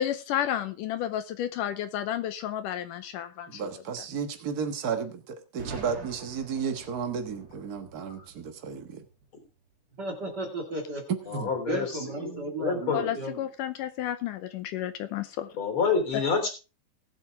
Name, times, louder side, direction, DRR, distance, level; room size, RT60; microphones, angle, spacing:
voice 1, 0.0-3.6 12.9-15.5, left 11 dB, 75° left, 10 dB, 2.3 m, -31 dB
voice 2, 3.5-8.9 11.3-11.5, right 6 dB, 75° right, 7 dB, 0.8 m, -33 dB
Boom, 5.6-9.4, right 3 dB, 50° right, 3.9 m, -45 dB
voice 3, 10.0-11.0 11.7-13.4, right 1 dB, 35° right, 2 dB, 2.4 m, -34 dB
voice 4, 11.3-13.2 15.6-16.5, left 5 dB, 40° left, 5 dB, 3.8 m, -28 dB
20.0 x 8.3 x 3.6 m, 0.31 s
omnidirectional pair, 4.0 m